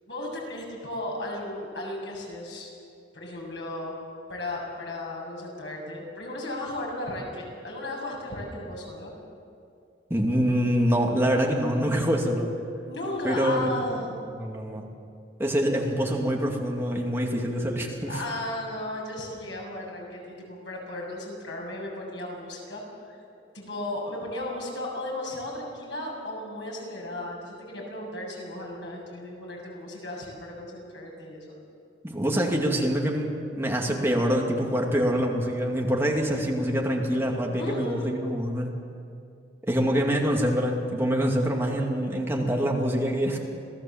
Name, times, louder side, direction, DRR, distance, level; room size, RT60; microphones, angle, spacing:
voice 1, 0.1-2.7 3.1-3.9 4.3-9.1 12.9-14.2 18.1-23.2 23.5-31.6 37.6-38.1, left 1 dB, 85° left, -1 dB, 7.3 m, -35 dB
voice 2, 10.1-12.5 13.2-13.8 14.4-14.9 15.4-18.2 32.0-38.7 39.6-43.4, equal, 15° right, 0 dB, 2.5 m, -25 dB
27.0 x 17.5 x 7.5 m, 2.4 s
head